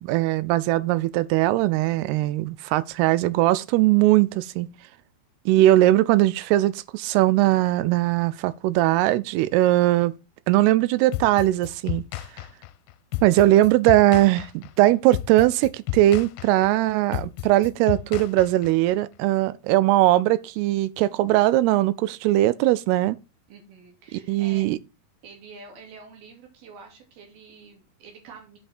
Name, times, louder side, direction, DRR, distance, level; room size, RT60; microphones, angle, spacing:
voice 1, 0.0-4.7 5.5-10.1 10.5-12.0 13.2-23.2 24.1-24.8, right 15 dB, 90° right, 2.6 m, -20 dB
sound 1, 11.1-18.9, left 15 dB, 90° left, 2.6 m, -33 dB
voice 2, 23.5-24.7 25.2-28.6, right 4 dB, 70° right, 4.4 m, -47 dB
8.3 x 5.7 x 4.3 m
omnidirectional pair, 4.6 m